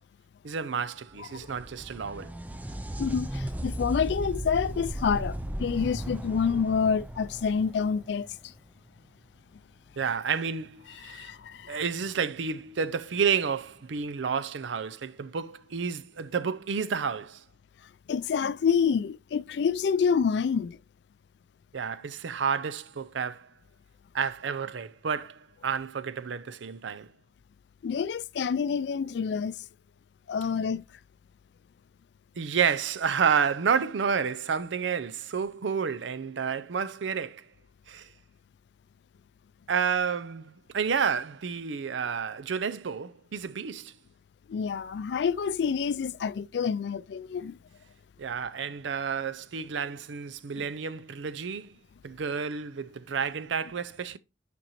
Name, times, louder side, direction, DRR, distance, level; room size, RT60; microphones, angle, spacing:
voice 1, 0.4-2.4 10.0-11.3 11.7-17.4 21.7-23.5 24.1-27.1 32.4-37.4 37.9-38.1 39.7-43.9 48.2-51.8 52.0-54.2, right 6 dB, 90° right, 0.5 m, -30 dB
sound 1, 1.1-8.7 12.1-12.2 13.2-13.3, right 1 dB, 10° right, 0.4 m, -36 dB
voice 2, 3.0-8.3 11.0-11.8 18.1-20.8 27.8-29.5 30.3-30.8 44.5-47.6, left 6 dB, 70° left, 0.3 m, -28 dB
8.9 x 5.2 x 3.0 m
head